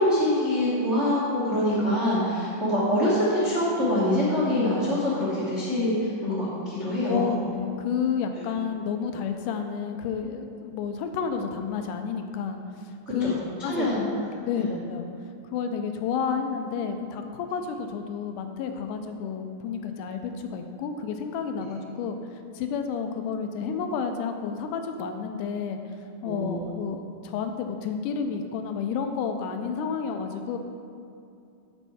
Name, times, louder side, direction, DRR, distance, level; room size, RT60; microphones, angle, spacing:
voice 1, 0.0-7.4 13.2-14.0 14.6-14.7 26.2-26.6, left 1 dB, 75° right, -8 dB, 0.6 m, -25 dB
voice 2, 7.0-13.3 13.6-13.9 14.4-15.1 15.5-22.2 22.5-25.8 26.2-30.6, left 6 dB, 80° left, 6 dB, 2.1 m, -30 dB
11.5 x 4.5 x 4.2 m, 2.6 s
omnidirectional pair, 3.8 m